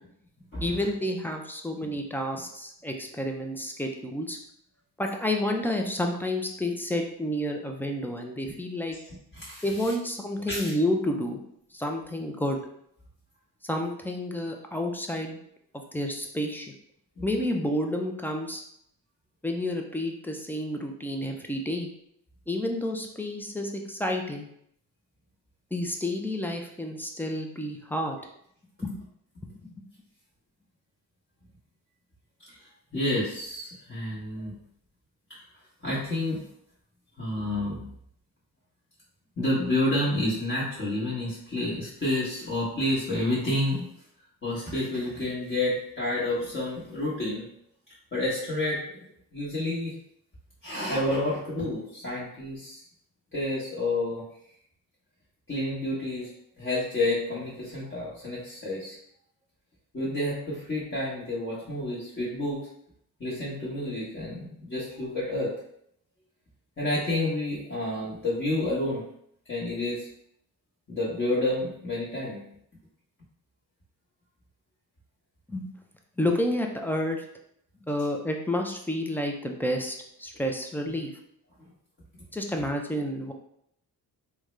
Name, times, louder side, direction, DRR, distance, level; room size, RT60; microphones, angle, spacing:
voice 1, 0.6-4.4 5.0-9.0 9.6-11.4 11.7-12.6 13.7-15.4 15.9-16.7 17.2-18.6 19.4-21.9 22.5-24.5 25.7-28.2 28.8-29.0 29.6-29.7 75.5-75.7 76.2-77.2 77.9-81.1 82.3-83.3, left 1 dB, 5° left, 2 dB, 0.3 m, -30 dB
voice 2, 9.0-9.9 10.5-10.7 17.2-17.3 32.5-32.6 32.9-34.6 35.3-35.4 35.8-36.4 37.2-37.9 39.4-43.8 44.4-47.5 48.1-48.8 49.3-49.9 50.6-52.8 53.3-54.2 55.5-59.0 59.9-62.7 63.2-65.5 66.8-69.0 69.5-70.1 70.9-72.4 80.9-81.0, left 1 dB, 30° left, -8 dB, 1.0 m, -29 dB
3.6 x 2.1 x 3.1 m, 0.70 s
cardioid pair, 110°, 39 cm